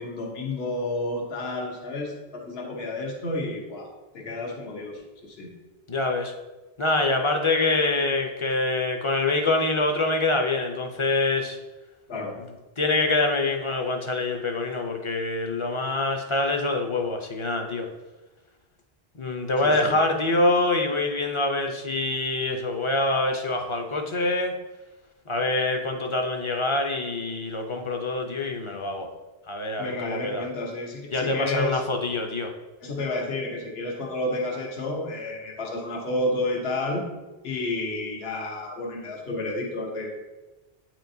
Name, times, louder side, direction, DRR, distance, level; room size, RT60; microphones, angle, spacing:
voice 1, 0.0-5.5 12.1-12.4 19.6-20.0 29.8-31.8 32.8-37.0 37.4-40.2, left 2 dB, 80° left, -1 dB, 1.2 m, -31 dB
voice 2, 5.9-6.3 6.8-11.6 12.8-17.9 19.2-24.6 25.3-29.1 29.5-30.4 31.1-32.5, left 2 dB, 35° left, 4 dB, 0.5 m, -25 dB
8.8 x 4.5 x 2.7 m, 1.2 s
omnidirectional pair, 1.0 m